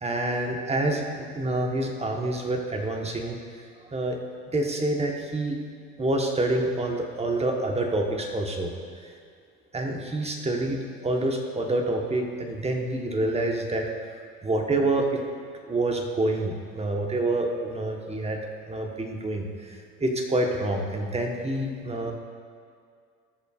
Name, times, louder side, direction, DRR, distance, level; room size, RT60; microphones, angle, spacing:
voice 1, 0.0-3.4 3.9-4.2 4.5-5.6 6.0-8.7 9.0-9.1 9.7-13.9 14.4-15.2 15.7-18.4 18.7-22.1, right 2 dB, 15° right, 2 dB, 1.2 m, -27 dB
16.5 x 6.8 x 2.5 m, 2.2 s
hypercardioid pair, 75°, 47 cm